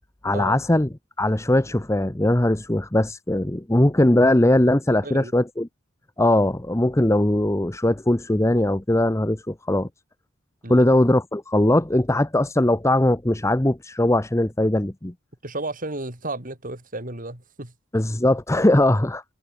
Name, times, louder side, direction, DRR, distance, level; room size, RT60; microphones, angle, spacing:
voice 1, 0.2-0.9 1.2-5.7 6.2-9.9 10.7-15.1 17.9-19.2, left 1 dB, 15° left, 0.9 m, -20 dB
voice 2, 4.9-5.3 10.6-10.9 15.4-17.7, right 2 dB, 45° right, 4.5 m, -33 dB
head